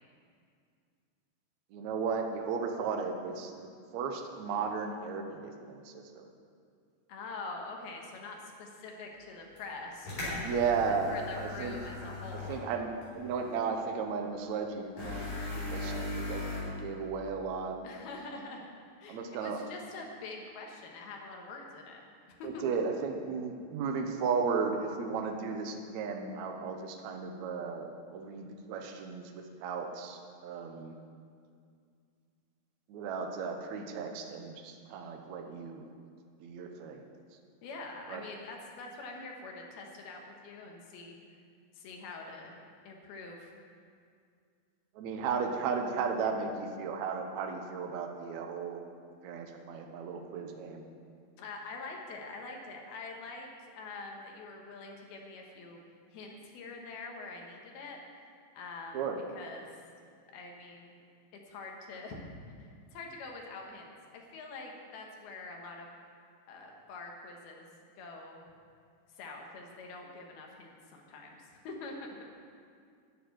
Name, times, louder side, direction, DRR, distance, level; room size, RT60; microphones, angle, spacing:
voice 1, 1.7-6.3 10.4-11.8 12.5-17.8 19.1-19.6 22.4-31.0 32.9-35.9 36.4-37.0 38.1-38.2 44.9-48.8 49.2-50.8 58.9-59.2, right 5 dB, 80° right, 3 dB, 1.6 m, -35 dB
voice 2, 7.1-10.5 10.9-12.7 17.8-18.7 19.0-22.0 22.4-22.6 37.6-41.2 41.7-42.5 42.8-43.5 51.4-53.5 53.8-55.8 56.1-58.0 58.5-59.1 59.3-59.7 60.3-61.0 61.5-62.3 62.6-65.9 66.5-67.7 68.0-68.5 69.2-72.1, left 3 dB, 75° left, 1 dB, 3.1 m, -45 dB
sound 1, 9.6-9.7 10.0-12.7 13.0-13.1 15.0-16.6, left 2 dB, 45° left, 4.7 m, -38 dB
11.0 x 6.9 x 9.2 m, 2.2 s
omnidirectional pair, 4.7 m